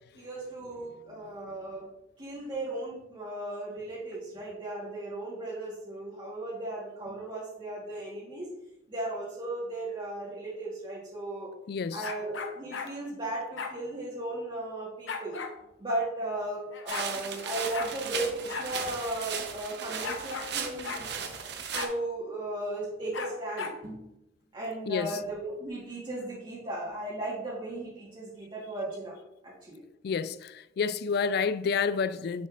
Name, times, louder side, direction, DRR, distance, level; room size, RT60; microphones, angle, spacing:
voice 1, 0.1-1.8 2.2-8.5 8.9-11.5 11.9-15.4 15.8-21.1 21.7-24.0 24.5-29.2 29.4-29.8, right 1 dB, 25° right, 1.3 m, -36 dB
voice 2, 11.7-12.1 24.9-25.1 30.0-32.5, left 5 dB, 60° left, 0.3 m, -29 dB
sound 1, 12.0-12.9 13.6-13.8 15.1-15.5 16.4-16.5 16.7-17.1 17.7-17.9 18.5-18.7 19.0-19.1 20.0-20.5 20.8-21.0 21.7-21.9 23.1-23.8, left 5 dB, 80° left, 0.8 m, -36 dB
sound 2, 16.9-21.9, right 6 dB, 65° right, 0.8 m, -36 dB
6.8 x 6.5 x 2.4 m
head